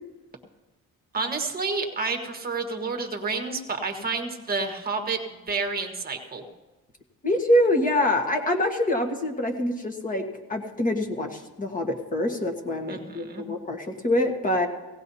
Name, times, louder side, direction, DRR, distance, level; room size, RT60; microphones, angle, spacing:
voice 1, 1.1-6.5 12.9-13.4, right 4 dB, 25° right, 4 dB, 1.4 m, -30 dB
voice 2, 7.2-14.7, left 1 dB, 20° left, 4 dB, 1.4 m, -25 dB
18.0 x 17.5 x 2.8 m, 1.1 s
wide cardioid pair, 180°, 37 cm